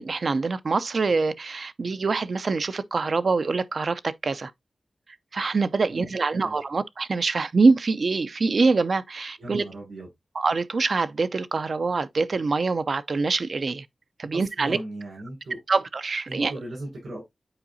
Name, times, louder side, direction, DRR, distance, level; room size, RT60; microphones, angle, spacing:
voice 1, 0.0-4.5 5.3-9.6 10.3-13.9 14.2-14.8 15.7-16.5, right 4 dB, 60° right, 0.5 m, -24 dB
voice 2, 9.4-10.1 14.3-15.6 16.3-17.2, right 1 dB, 85° right, 5.3 m, -37 dB
8.7 x 4.8 x 2.6 m
wide cardioid pair, 85°, 0 cm